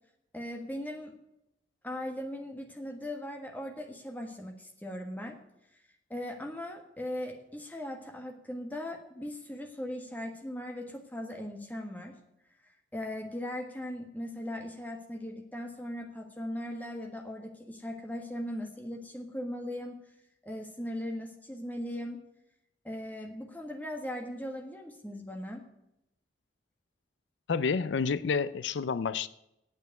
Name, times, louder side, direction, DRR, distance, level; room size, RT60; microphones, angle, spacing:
voice 1, 0.3-1.1 1.8-5.4 6.1-12.1 12.9-20.0 20.4-22.2 22.8-25.6, left 1 dB, 10° left, 1.5 m, -39 dB
voice 2, 27.5-29.3, left 5 dB, 80° left, 0.4 m, -29 dB
9.3 x 8.1 x 9.2 m
head